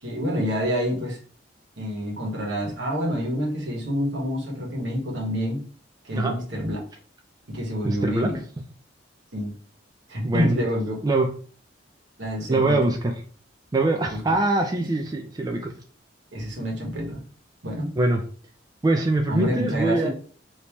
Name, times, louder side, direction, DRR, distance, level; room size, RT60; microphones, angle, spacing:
voice 1, 0.0-1.2 1.8-5.6 6.0-6.8 7.5-8.4 9.3-9.5 10.1-10.9 12.2-12.9 14.1-14.2 16.3-17.2 17.6-17.9 19.3-20.1, equal, 75° right, -1 dB, 1.2 m, -27 dB
voice 2, 7.8-8.3 10.2-10.6 11.0-11.3 12.5-13.1 13.7-15.7 18.0-18.2 18.8-20.1, right 2 dB, 20° right, 2 dB, 0.3 m, -23 dB
3.4 x 2.8 x 2.9 m, 0.43 s
head